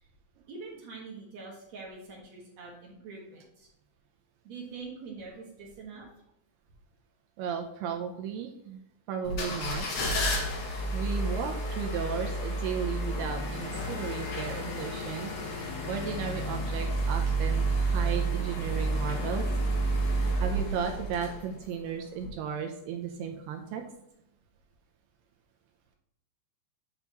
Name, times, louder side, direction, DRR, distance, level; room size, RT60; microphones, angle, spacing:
voice 1, 0.5-3.7 4.4-6.2, right 4 dB, 55° right, -3 dB, 2.0 m, -44 dB
voice 2, 7.4-8.8 9.1-9.9 10.9-15.3 15.9-19.5 20.2-23.9, right 7 dB, 85° right, 3 dB, 2.4 m, -35 dB
sound 1, 9.2-21.7 22.2-22.3, right 2 dB, 65° left, 1.6 m, -30 dB
9.3 x 5.4 x 3.0 m, 0.79 s
omnidirectional pair, 5.2 m